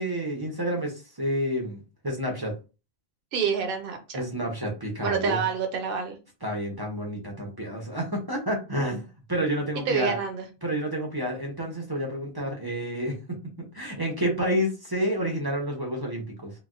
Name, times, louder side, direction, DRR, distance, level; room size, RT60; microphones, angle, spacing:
voice 1, 0.0-2.5 4.1-5.4 6.4-10.2 10.6-13.1 13.6-16.5, equal, 30° right, 0 dB, 0.5 m, -29 dB
voice 2, 3.3-4.2 5.0-6.2 9.7-10.4, right 6 dB, 60° right, 5 dB, 0.8 m, -27 dB
3.9 x 2.1 x 2.4 m, 0.31 s
omnidirectional pair, 1.1 m